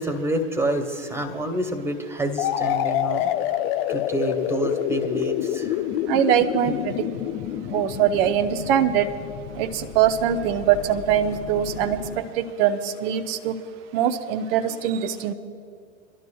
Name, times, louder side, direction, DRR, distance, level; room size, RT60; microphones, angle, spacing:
voice 1, 0.0-3.3 3.9-5.8 6.7-6.8, right 1 dB, 5° right, 5 dB, 1.6 m, -28 dB
sound 1, 2.4-10.0, left 11 dB, 55° left, 0.9 m, -27 dB
sound 2, 5.4-12.2, left 8 dB, 35° left, 2.7 m, -42 dB
voice 2, 6.1-7.1 7.7-9.1 9.6-13.6 13.9-15.3, right 9 dB, 55° right, 9 dB, 0.8 m, -22 dB
27.0 x 12.5 x 2.3 m, 2.4 s
figure-of-eight pair, 80°, 36 cm